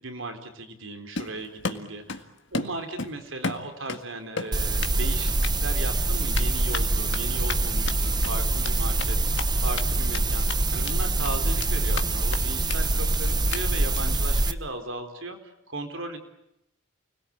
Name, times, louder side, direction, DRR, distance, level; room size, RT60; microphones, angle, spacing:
voice 1, 0.0-5.3 5.6-16.2, right 2 dB, 70° right, 7 dB, 4.1 m, -37 dB
Run, 1.1-2.3 2.5-4.0 4.4-5.0 5.3-5.5 6.3-9.8 10.1-10.2 10.5-11.0 11.2-12.0 12.3-12.4 12.7-12.8 13.1-13.2 13.5-13.6 13.9-14.2, left 4 dB, 60° left, 1.9 m, -33 dB
sound 1, 4.5-14.5, right 2 dB, 20° right, 1.1 m, -25 dB
30.0 x 21.5 x 8.8 m, 0.86 s
head